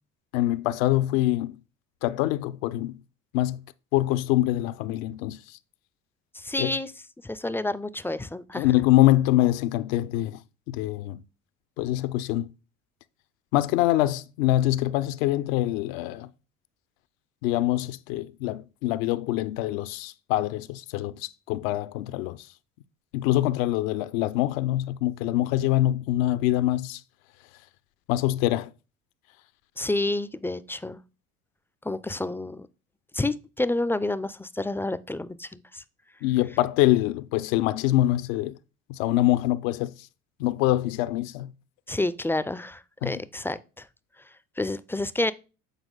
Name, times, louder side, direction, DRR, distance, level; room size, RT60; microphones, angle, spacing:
voice 1, 0.3-1.6 2.0-3.0 3.3-3.6 3.9-5.4 6.6-6.7 8.5-10.4 10.7-11.2 11.8-12.5 13.5-16.3 17.4-22.5 23.1-27.0 28.1-28.7 36.2-38.5 38.9-39.9 40.4-41.5 43.0-43.2, left 15 dB, 75° left, 0.6 m, -24 dB
voice 2, 6.3-6.9 7.2-8.7 29.8-31.0 31.8-32.7 33.1-35.8 41.9-43.9 44.6-45.3, left 2 dB, 5° left, 0.3 m, -29 dB
8.1 x 4.5 x 3.9 m
hypercardioid pair, 65°, 41 cm